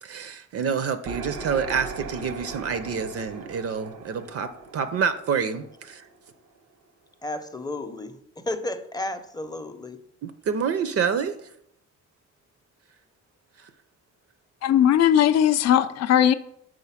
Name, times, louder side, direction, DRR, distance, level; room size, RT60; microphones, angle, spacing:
voice 1, 0.0-6.1 10.2-11.4, right 6 dB, 50° right, 0.5 m, -27 dB
sound 1, 1.1-6.7, right 4 dB, 85° right, 1.0 m, -39 dB
voice 2, 7.2-8.2 8.5-10.0, left 1 dB, 15° left, 0.6 m, -32 dB
voice 3, 14.6-16.3, left 10 dB, 60° left, 0.5 m, -18 dB
4.9 x 3.9 x 5.6 m
cardioid pair, 90°, 30 cm